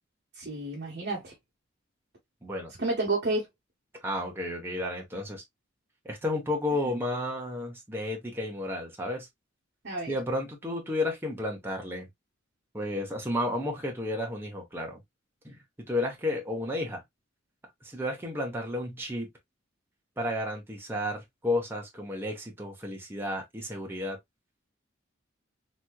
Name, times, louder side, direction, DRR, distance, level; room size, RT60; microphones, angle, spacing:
voice 1, 0.3-1.3 2.8-3.5 6.8-6.9 9.8-10.1, right 2 dB, 55° right, 1.3 m, -30 dB
voice 2, 2.4-2.7 4.0-5.4 6.0-9.3 10.1-12.1 12.7-15.0 15.4-17.0 17.8-19.3 20.2-24.2, left 1 dB, 10° right, 1.0 m, -32 dB
3.4 x 3.1 x 2.3 m
head